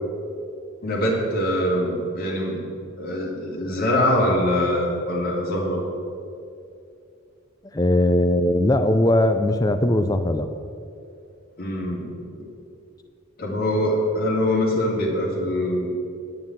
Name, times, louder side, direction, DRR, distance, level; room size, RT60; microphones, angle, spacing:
voice 1, 0.8-2.7 3.0-5.8 11.6-12.1 12.4-12.5 13.4-15.9, left 1 dB, 45° left, -3 dB, 2.8 m, -23 dB
voice 2, 7.7-10.5, left 1 dB, 15° left, 9 dB, 0.5 m, -19 dB
9.8 x 7.9 x 8.6 m, 2.5 s
head